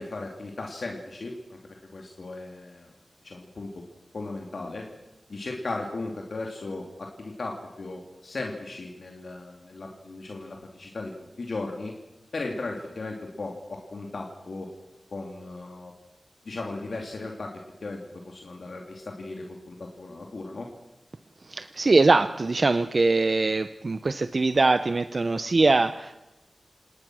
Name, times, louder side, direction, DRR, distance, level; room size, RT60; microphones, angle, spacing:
voice 1, 0.0-1.6 1.9-2.9 3.2-3.7 4.1-4.9 5.3-11.1 11.4-11.9 12.3-14.7 15.1-15.9 16.4-17.5 17.8-18.0 18.2-20.7, left 2 dB, 70° left, 1 dB, 2.8 m, -36 dB
voice 2, 21.4-26.2, right 3 dB, 50° right, 11 dB, 0.8 m, -22 dB
28.5 x 19.0 x 6.3 m, 1.0 s
wide cardioid pair, 80°, 0 cm